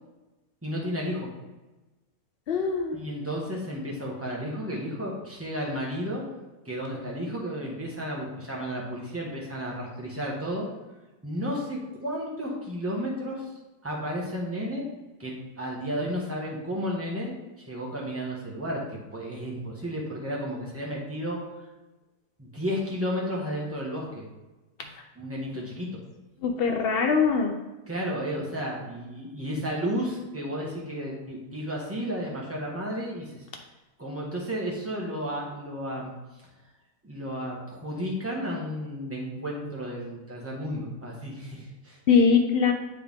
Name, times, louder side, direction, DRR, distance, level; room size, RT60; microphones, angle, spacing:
voice 1, 0.6-1.3 2.9-6.2 6.6-10.7 11.2-13.5 13.8-14.8 15.2-21.4 22.4-24.2 25.1-25.9 27.9-33.4 34.0-36.1 37.0-42.0, equal, 10° right, -4 dB, 1.3 m, -32 dB
voice 2, 2.5-3.0 26.4-27.5 42.1-42.7, left 5 dB, 85° left, 3 dB, 0.5 m, -22 dB
8.9 x 3.6 x 3.6 m, 1.1 s
omnidirectional pair, 1.8 m